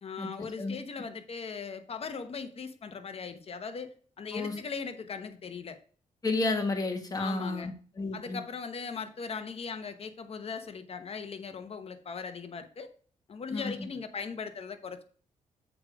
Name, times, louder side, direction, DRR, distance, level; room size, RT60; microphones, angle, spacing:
voice 1, 0.0-5.8 7.2-7.7 8.1-12.9 13.3-15.0, left 5 dB, 45° left, 8 dB, 1.0 m, -39 dB
voice 2, 6.2-8.4 13.5-13.7, left 3 dB, 30° left, 3 dB, 1.6 m, -31 dB
7.2 x 5.0 x 5.0 m, 0.43 s
cardioid pair, 110°, 13 cm